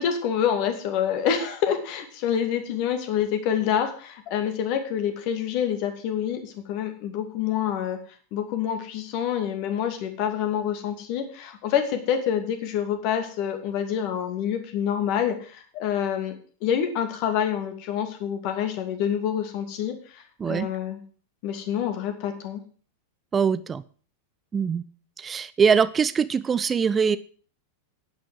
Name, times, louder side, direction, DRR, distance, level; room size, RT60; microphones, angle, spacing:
voice 1, 0.0-8.0 8.3-16.3 16.6-21.0 21.4-22.6, left 9 dB, 45° left, 7 dB, 2.6 m, -27 dB
voice 2, 20.4-20.7 23.3-23.8 24.5-24.8 25.2-27.2, right 6 dB, 20° right, 15 dB, 0.6 m, -22 dB
11.0 x 8.6 x 7.8 m, 0.42 s
figure-of-eight pair, 90°, 0 cm